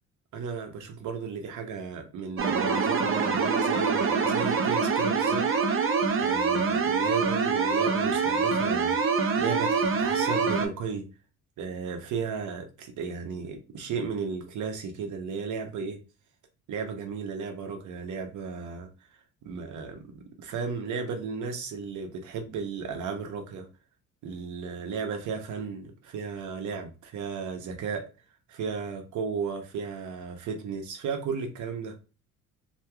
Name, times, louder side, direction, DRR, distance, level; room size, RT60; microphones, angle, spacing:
voice 1, 0.3-5.5 6.2-9.0 9.4-11.1 11.6-16.0 16.7-18.9 19.4-23.7 24.2-28.1 28.5-32.0, right 5 dB, 75° right, 0.9 m, -34 dB
sound 1, 2.4-10.7, right 5 dB, 45° right, 0.6 m, -25 dB
2.9 x 2.9 x 2.3 m
cardioid pair, 90°, 30 cm